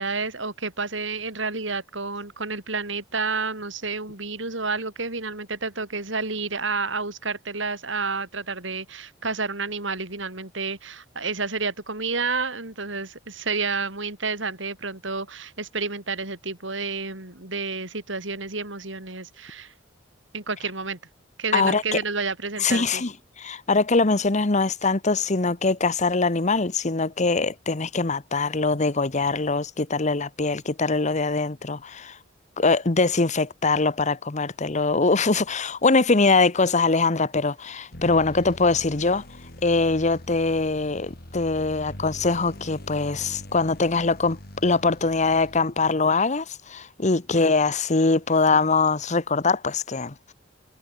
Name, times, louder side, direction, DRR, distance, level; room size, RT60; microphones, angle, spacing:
voice 1, 0.0-19.7 20.3-21.0 21.4-23.0, right 4 dB, 70° right, 5.6 m, -30 dB
voice 2, 21.5-22.0 22.6-32.2 32.6-39.2 39.6-50.3, left 3 dB, 40° left, 1.1 m, -23 dB
sound 1, 37.9-45.9, left 1 dB, 55° left, 5.1 m, -42 dB
head